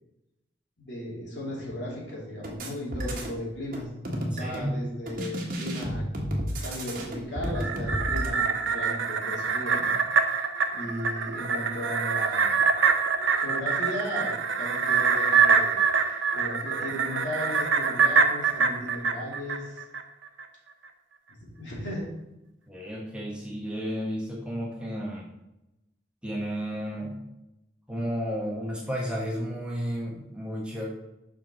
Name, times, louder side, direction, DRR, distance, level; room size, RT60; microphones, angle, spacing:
voice 1, 0.8-3.9 4.2-6.1 6.6-10.4 10.7-12.6 13.4-19.8 21.6-22.1, left 1 dB, 65° left, -4 dB, 2.7 m, -36 dB
sound 1, 2.4-3.4 3.7-4.7 5.1-8.3, equal, 45° right, 1.3 m, -32 dB
voice 2, 4.4-4.8 22.7-25.3 26.2-27.2 27.9-30.8, equal, 5° right, -5 dB, 1.2 m, -32 dB
sound 2, 7.5-20.0 20.4-20.5, right 5 dB, 70° right, 0.6 m, -25 dB
6.1 x 5.2 x 4.3 m, 0.93 s
head